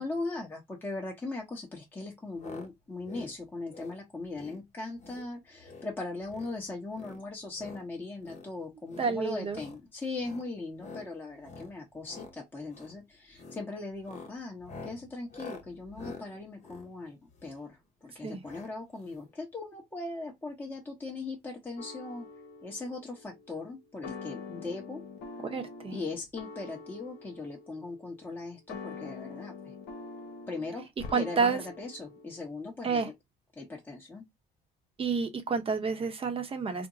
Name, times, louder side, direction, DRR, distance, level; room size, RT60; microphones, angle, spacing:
voice 1, 0.0-22.3 22.6-25.0 25.9-29.7 30.5-30.9 31.2-33.1 33.6-34.2, left 3 dB, 10° left, 1.1 m, -39 dB
sound 1, 2.4-2.7 3.0-3.3 3.7-4.0 4.3-4.6 5.0-5.3 5.6-5.9 6.2-6.5 6.9-7.8 8.2-8.5 8.8-9.1 9.5-9.8 10.2-10.5 10.8-11.1 11.4-11.7 12.0-12.3 12.7-13.0 13.3-13.6 14.0-17.7 18.4-18.7 19.0-19.1 19.3-19.4, left 4 dB, 45° left, 1.2 m, -47 dB
voice 2, 9.0-9.6 18.2-18.4 25.4-26.0 31.1-31.6 32.8-33.1 35.0-36.9, right 5 dB, 35° right, 0.8 m, -29 dB
sound 2, 21.8-32.4, left 4 dB, 80° left, 0.9 m, -45 dB
2.6 x 2.2 x 3.9 m
cardioid pair, 110°, 17 cm